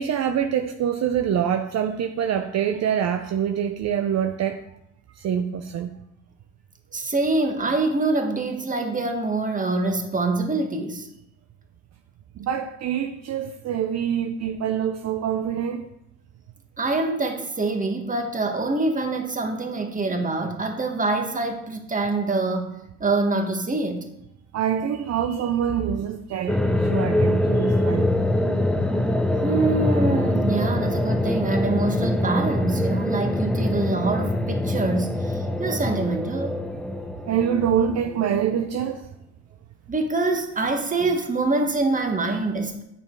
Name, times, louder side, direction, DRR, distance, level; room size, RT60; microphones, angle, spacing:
voice 1, 0.0-4.6 5.2-5.9 12.4-15.9 24.5-28.1 37.3-39.1, right 8 dB, 60° right, 0.6 m, -25 dB
voice 2, 6.9-11.1 16.8-22.7 23.0-24.0 29.4-36.5 39.9-42.8, right 3 dB, 25° right, 1.6 m, -25 dB
sound 1, 26.5-38.5, left 1 dB, 5° left, 0.7 m, -24 dB
8.6 x 7.0 x 4.6 m
cardioid pair, 90°, 30 cm